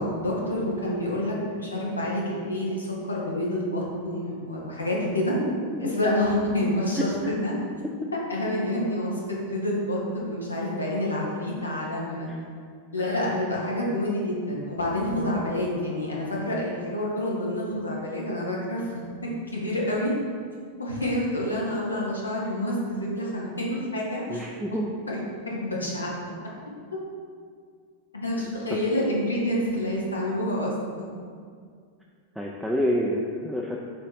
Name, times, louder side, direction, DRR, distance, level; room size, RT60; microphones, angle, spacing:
voice 1, 0.0-5.4 5.8-7.5 8.3-12.3 12.9-20.1 20.8-24.5 25.1-25.2 25.5-26.1 28.2-31.0, left 1 dB, 80° left, -3 dB, 1.1 m, -28 dB
voice 2, 24.3-24.9 28.7-28.8 32.4-33.8, equal, ahead, -3 dB, 0.4 m, -28 dB
6.7 x 2.9 x 4.8 m, 2.1 s
figure-of-eight pair, 90°, 0 cm